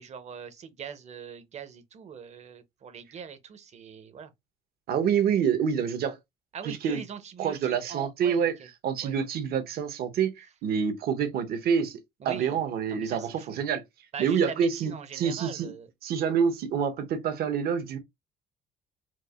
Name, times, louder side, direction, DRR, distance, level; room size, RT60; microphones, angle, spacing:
voice 1, 0.0-4.3 6.5-8.7 9.0-9.1 12.2-12.6 12.9-13.6 14.1-15.9, right 7 dB, 40° right, 0.7 m, -42 dB
voice 2, 4.9-6.2 6.6-7.0 7.4-8.5 8.8-12.0 12.2-13.8 14.2-15.7 16.0-18.0, right 7 dB, 65° right, 0.9 m, -27 dB
4.6 x 2.4 x 2.3 m
cardioid pair, 110°, 17 cm